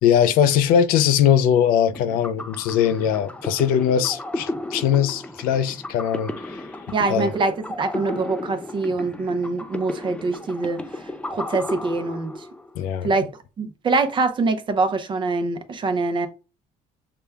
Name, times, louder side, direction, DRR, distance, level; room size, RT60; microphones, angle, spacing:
voice 1, 0.0-6.6 7.1-7.3 12.8-13.1, left 9 dB, 80° left, 0.4 m, -20 dB
sound 1, 1.9-12.8, left 1 dB, 10° left, 0.4 m, -34 dB
voice 2, 6.9-10.8 11.3-12.5 13.0-13.2 13.6-16.3, right 3 dB, 35° right, 0.7 m, -24 dB
6.7 x 2.3 x 3.4 m
cardioid pair, 125°, 15 cm